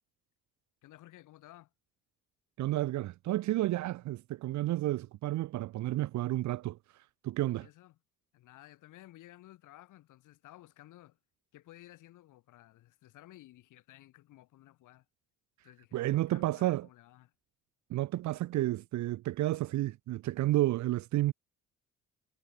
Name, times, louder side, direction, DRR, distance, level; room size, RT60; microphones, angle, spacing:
voice 1, 0.8-1.7 7.6-8.0 8.3-11.2 11.5-15.1 15.6-17.3, left 15 dB, 90° left, 7.7 m, -55 dB
voice 2, 2.6-7.7 15.9-16.9 17.9-21.3, right 16 dB, 70° right, 0.6 m, -31 dB
cardioid pair, 90°, 30 cm